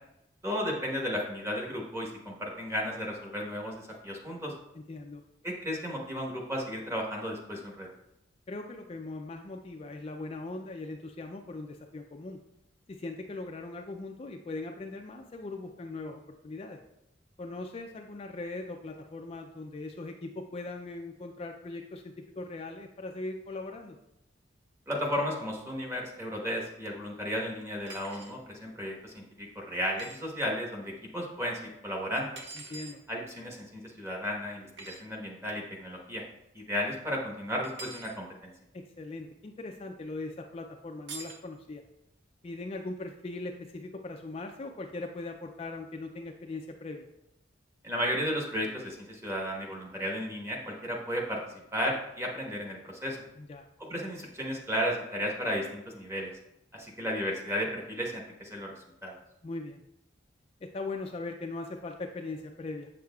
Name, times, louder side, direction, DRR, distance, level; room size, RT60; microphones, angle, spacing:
voice 1, 0.4-4.5 5.4-7.9 24.9-32.3 33.1-36.2 36.5-38.5 47.8-51.4 51.7-53.2 53.9-56.3 56.7-58.7 59.0-59.2, equal, 15° right, -1 dB, 1.1 m, -34 dB
voice 2, 4.7-5.2 8.5-12.4 12.9-16.8 17.4-24.0 32.7-33.0 38.7-41.8 42.4-47.1 53.4-53.7 59.4-59.8 60.6-62.9, left 2 dB, 30° left, 4 dB, 0.4 m, -40 dB
sound 1, 27.9-28.4 30.0-30.2 32.4-33.0 34.8-35.0 37.6-38.2 41.1-41.4, right 3 dB, 70° right, 0.9 m, -44 dB
7.4 x 6.3 x 2.3 m, 0.86 s
head